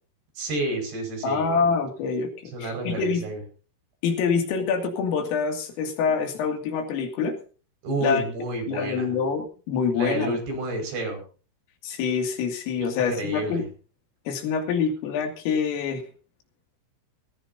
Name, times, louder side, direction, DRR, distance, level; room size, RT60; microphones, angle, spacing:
voice 1, 0.4-1.6 2.5-3.4 7.8-9.2 9.9-11.2 12.8-13.6, right 2 dB, 55° right, 4 dB, 7.5 m, -30 dB
voice 2, 1.2-2.3 2.6-3.2 4.0-7.4 8.0-8.2 8.7-10.4 11.8-13.7 14.3-16.0, left 5 dB, 75° left, 4 dB, 5.1 m, -26 dB
19.0 x 18.0 x 2.8 m, 0.37 s
omnidirectional pair, 6.0 m